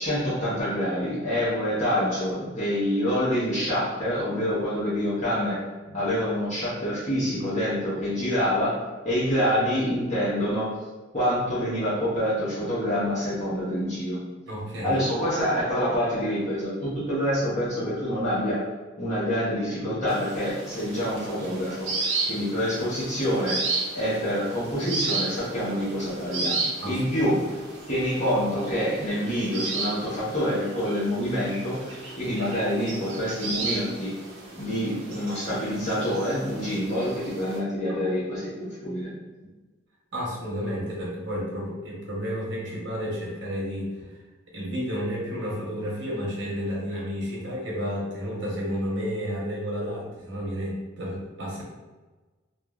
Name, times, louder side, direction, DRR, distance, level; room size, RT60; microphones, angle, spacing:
voice 1, 0.0-5.6 5.9-10.7 11.1-14.2 14.8-18.6 19.0-23.6 23.9-27.5 27.9-34.1 34.6-38.5 38.8-39.1, equal, 40° left, -10 dB, 0.9 m, -26 dB
voice 2, 14.5-15.0 26.8-27.0 32.2-32.3 37.9-38.0 40.1-44.1 44.5-51.6, equal, 65° right, -4 dB, 0.9 m, -31 dB
sound 1, 20.1-37.6, right 3 dB, 85° right, 0.6 m, -34 dB
3.0 x 2.4 x 2.3 m, 1.2 s
head